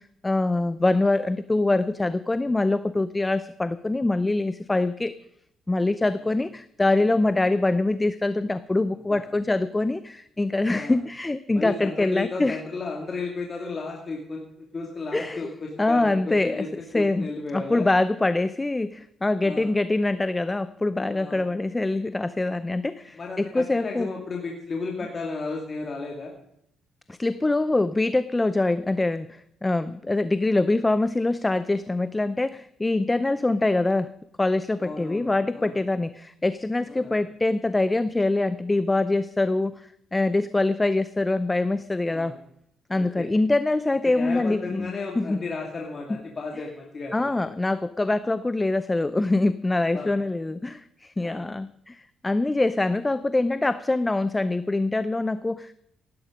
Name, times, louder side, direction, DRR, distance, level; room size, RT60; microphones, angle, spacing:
voice 1, 0.0-5.1 5.7-12.6 15.1-15.5 15.8-16.7 16.9-24.1 27.1-34.1 34.4-42.3 42.9-45.4 46.1-46.2 47.1-55.7, left 2 dB, 15° left, 14 dB, 0.6 m, -24 dB
voice 2, 11.5-17.9 19.4-19.7 21.1-21.4 23.1-26.3 34.8-35.7 36.9-37.2 42.1-42.4 42.9-43.3 44.0-47.3 49.9-50.1 51.2-51.4, left 3 dB, 40° left, 0 dB, 2.7 m, -34 dB
16.0 x 11.5 x 5.2 m, 0.75 s
cardioid pair, 90°, 0 cm